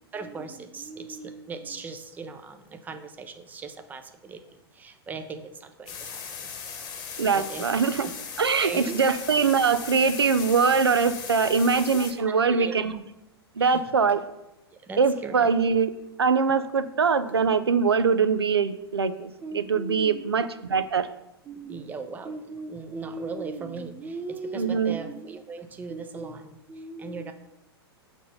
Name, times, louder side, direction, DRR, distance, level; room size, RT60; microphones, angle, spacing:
voice 1, 0.1-6.5 7.2-7.6 8.0-8.1 8.6-9.0 11.5-11.8 12.2-12.8 13.6-13.8 14.7-15.5 17.3-17.4 19.4-20.2 21.4-27.3, right 4 dB, 15° right, 7 dB, 0.5 m, -38 dB
sound 1, 5.9-12.1, left 6 dB, 30° left, 1.0 m, -38 dB
voice 2, 7.2-8.1 8.4-12.9 13.6-14.2 15.0-15.9 16.2-21.1 24.5-25.0, right 5 dB, 75° right, 12 dB, 0.5 m, -23 dB
6.1 x 4.4 x 5.4 m, 0.87 s
figure-of-eight pair, 100°, 13 cm